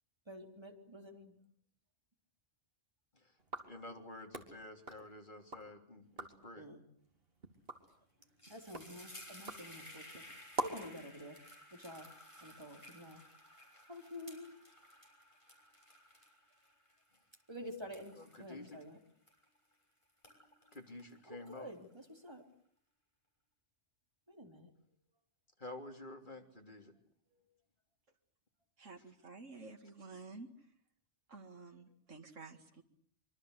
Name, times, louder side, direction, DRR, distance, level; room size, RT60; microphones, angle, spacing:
voice 1, 0.3-1.3 6.6-6.8 8.5-10.2 10.6-11.4 11.7-12.1 12.4-13.2 13.9-14.6 17.5-19.0 21.3-22.4 24.3-24.7 27.3-27.4, equal, 20° right, 3 dB, 3.8 m, -49 dB
sound 1, 3.4-5.7 6.0-6.5 7.0-11.0, right 2 dB, 50° right, 3.1 m, -46 dB
voice 2, 3.6-6.7 18.2-18.8 20.7-21.7 25.6-26.9, left 2 dB, 40° left, 3 dB, 3.6 m, -50 dB
sound 2, 7.7-7.9 8.2-19.7 20.1-22.0, left 1 dB, 25° left, 6.6 m, -56 dB
voice 3, 28.8-30.7 31.3-32.8, right 3 dB, 90° right, 4 dB, 2.4 m, -52 dB
26.0 x 24.5 x 8.2 m, 0.64 s
omnidirectional pair, 1.2 m